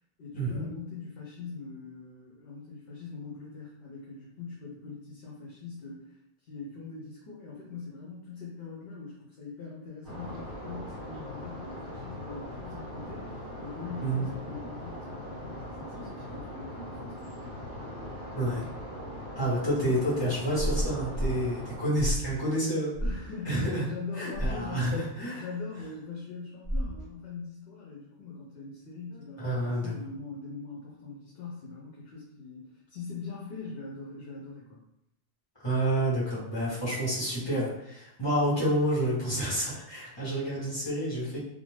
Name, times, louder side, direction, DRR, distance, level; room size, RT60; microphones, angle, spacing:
voice 1, 0.2-6.2 6.4-17.6 23.0-25.0 25.3-34.8, left 4 dB, 70° left, -4 dB, 0.8 m, -42 dB
sound 1, 10.0-21.8, left 1 dB, 20° right, 1.3 m, -41 dB
voice 2, 18.3-18.7 19.3-22.9 23.4-23.8 24.2-25.4 29.4-29.9 35.6-41.4, right 1 dB, 25° left, -9 dB, 1.0 m, -29 dB
sound 2, 20.5-21.4 22.0-22.4 22.9-23.2 24.3-24.6 26.7-27.0, equal, 50° left, 1.4 m, -30 dB
2.4 x 2.1 x 3.1 m, 0.81 s
omnidirectional pair, 1.1 m